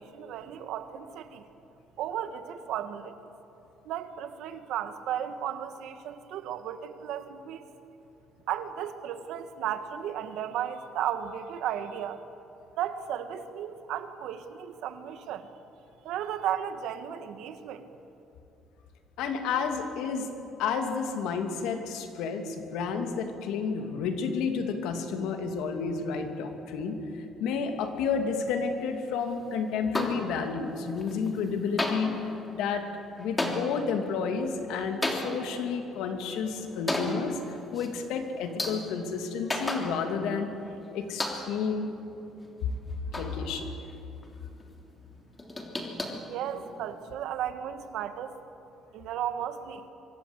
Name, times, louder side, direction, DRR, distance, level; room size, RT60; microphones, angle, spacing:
voice 1, 0.0-1.4 2.0-3.2 3.9-7.6 8.5-12.2 12.8-15.5 16.0-17.9 46.3-48.4 48.9-49.8, right 10 dB, 80° right, 9 dB, 1.7 m, -34 dB
voice 2, 19.2-20.3 20.6-32.8 33.2-40.5 40.9-41.9 42.6-42.7 43.1-43.7, left 5 dB, 90° left, 5 dB, 2.9 m, -31 dB
sound 1, 29.9-30.7 31.0-31.5 31.8-40.4 40.7-40.8 41.2-41.7 42.2-43.9 44.2-44.4 44.6-44.7 45.0-47.0, left 1 dB, 15° left, 3.2 m, -35 dB
25.0 x 23.5 x 8.3 m, 2.9 s
cardioid pair, 135°, 0 cm